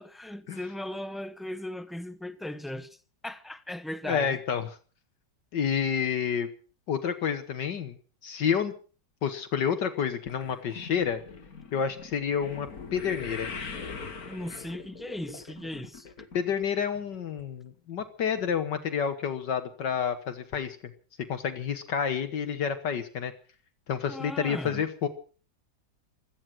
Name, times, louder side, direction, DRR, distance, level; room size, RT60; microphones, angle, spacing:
voice 1, 0.0-3.0 3.2-4.4 14.3-16.1 24.1-24.8, left 1 dB, ahead, 0.6 m, -37 dB
voice 2, 4.0-4.6 5.5-6.5 6.9-8.0 8.2-8.7 9.2-11.2 11.7-13.5 16.3-20.8 21.3-23.3 23.9-25.1, left 7 dB, 70° left, 1.9 m, -29 dB
sound 1, 10.3-16.7 17.0-17.4 18.0-18.1 18.4-18.5, left 5 dB, 55° left, 2.3 m, -42 dB
17.0 x 14.0 x 6.1 m
omnidirectional pair, 2.0 m